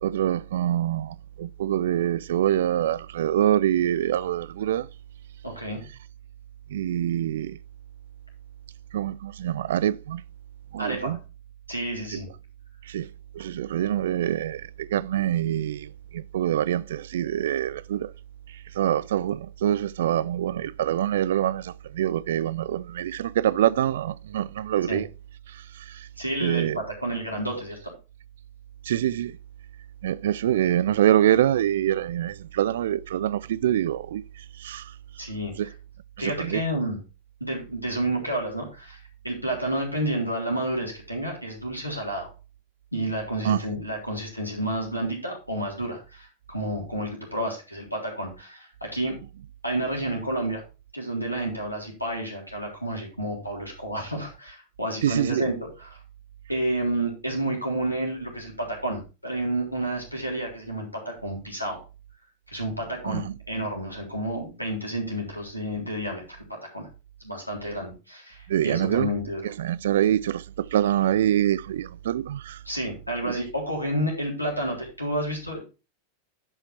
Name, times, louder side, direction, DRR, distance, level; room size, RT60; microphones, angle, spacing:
voice 1, 0.0-4.9 6.7-7.6 8.9-10.2 10.7-11.2 12.1-12.2 12.9-18.1 18.7-25.1 25.5-26.1 26.4-26.8 28.8-29.4 30.0-34.9 35.6-35.7 36.2-36.6 43.4-43.6 55.0-55.4 63.0-63.4 68.5-69.1 69.4-72.6 73.3-73.4, right 11 dB, 60° right, 0.4 m, -25 dB
voice 2, 5.4-5.8 10.8-11.2 11.7-12.3 24.9-25.0 26.2-27.9 35.2-35.5 36.2-37.0 37.4-42.3 42.9-49.1 49.6-50.6 50.9-55.9 56.5-61.8 62.5-63.2 63.5-66.2 66.7-66.9 67.2-69.4 72.6-75.6, right 1 dB, 90° left, 3.5 m, -30 dB
10.5 x 5.7 x 4.3 m
figure-of-eight pair, 90°, 0 cm